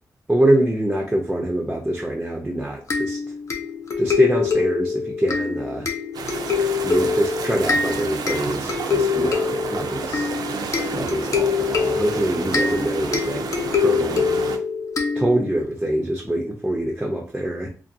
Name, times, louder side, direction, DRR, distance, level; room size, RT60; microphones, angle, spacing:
voice 1, 0.3-3.2 4.0-5.9 6.8-10.3 10.9-13.5 13.8-14.3 15.1-17.7, right 1 dB, 10° right, -1 dB, 0.4 m, -24 dB
sound 1, 2.9-15.7, left 5 dB, 50° left, 0.4 m, -25 dB
sound 2, 6.1-14.6, right 5 dB, 85° right, 0.4 m, -31 dB
2.4 x 2.2 x 2.6 m, 0.38 s
wide cardioid pair, 130°, 7 cm